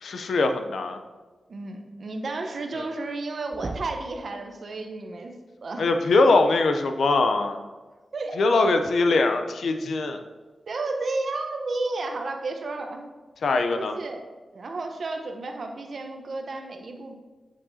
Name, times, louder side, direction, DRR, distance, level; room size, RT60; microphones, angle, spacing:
voice 1, 0.0-1.0 2.8-2.9 5.8-7.6 8.4-10.2 13.4-13.9, left 3 dB, 80° left, 6 dB, 0.5 m, -22 dB
voice 2, 1.5-5.3 5.6-5.9 8.1-8.7 10.7-13.1 13.7-14.2 14.5-17.1, right 3 dB, 65° right, 4 dB, 0.9 m, -32 dB
sound 1, 3.5-4.2 5.9-6.0 7.8-8.0 8.8-8.9, right 2 dB, 45° right, 0.5 m, -37 dB
8.3 x 7.3 x 2.7 m, 1.3 s
cardioid pair, 65°, 0 cm